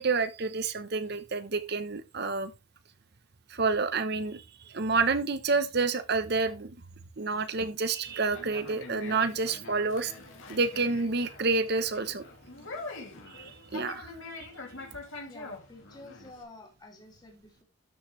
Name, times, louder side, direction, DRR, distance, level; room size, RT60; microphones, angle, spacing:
voice 1, 0.0-2.5 3.5-6.7 7.2-10.1 10.5-12.2 13.3-14.1 14.3-14.5, right 4 dB, 50° right, 0.9 m, -29 dB
Conversation, 8.1-16.4, left 3 dB, 70° left, 2.7 m, -44 dB
voice 2, 15.2-17.6, left 2 dB, 20° left, 3.0 m, -50 dB
13.0 x 6.3 x 3.2 m
head